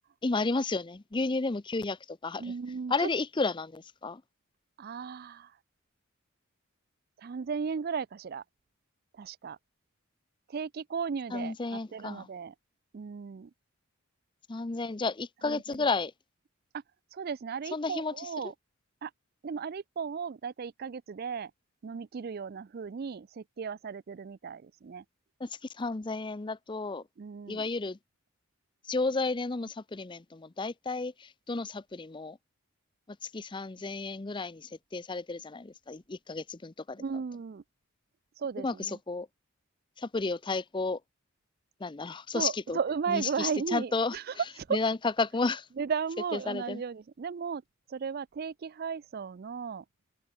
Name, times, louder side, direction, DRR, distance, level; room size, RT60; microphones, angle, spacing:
voice 1, 0.2-2.5 2.9-4.2 11.3-12.3 14.5-16.1 17.7-18.3 25.4-27.0 27.5-28.0 28.9-32.4 33.2-37.0 38.6-39.3 40.0-41.0 41.8-42.8 43.1-44.2 44.7-45.7 46.3-46.8, left 3 dB, 20° left, 0.5 m, -32 dB
voice 2, 2.4-3.1 4.8-5.5 7.2-8.4 9.1-9.6 10.5-12.5 12.9-13.5 15.4-15.8 17.1-18.5 19.0-19.1 19.4-21.5 21.8-25.0 27.2-27.6 37.0-37.6 38.4-39.0 42.3-44.8 45.8-47.6 47.9-49.8, right 6 dB, 45° right, 0.4 m, -35 dB
head